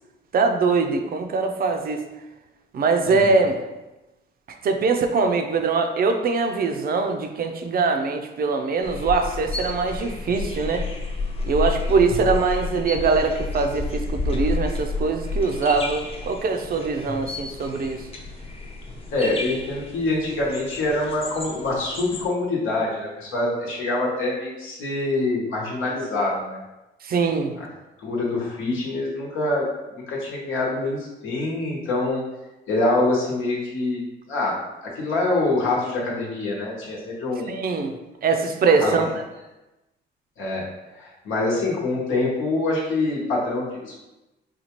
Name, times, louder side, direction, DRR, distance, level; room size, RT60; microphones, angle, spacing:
voice 1, 0.3-2.0 2.7-3.6 4.6-10.8 11.4-18.1 27.0-27.5 37.5-37.9 38.2-39.0, right 4 dB, 50° right, 5 dB, 0.4 m, -22 dB
voice 2, 3.0-3.4 19.1-26.6 27.6-27.7 28.0-32.2 32.7-34.0 34.3-34.6 34.8-37.5 38.8-39.1 40.4-40.6 40.9-44.0, left 2 dB, 85° left, -3 dB, 1.0 m, -25 dB
sound 1, 8.8-22.3, left 3 dB, 30° left, 0.6 m, -31 dB
4.2 x 2.3 x 2.9 m, 1.0 s
cardioid pair, 90°, 20 cm